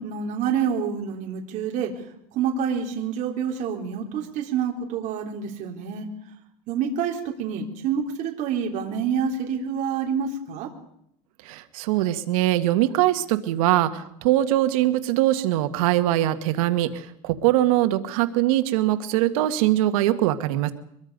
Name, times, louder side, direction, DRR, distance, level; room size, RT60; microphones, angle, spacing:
voice 1, 0.0-1.9 2.3-6.1 6.7-10.7, right 7 dB, 45° right, 1 dB, 3.4 m, -27 dB
voice 2, 11.4-20.7, right 14 dB, 85° right, 9 dB, 1.7 m, -22 dB
24.0 x 22.0 x 5.3 m, 0.74 s
cardioid pair, 155°, 17 cm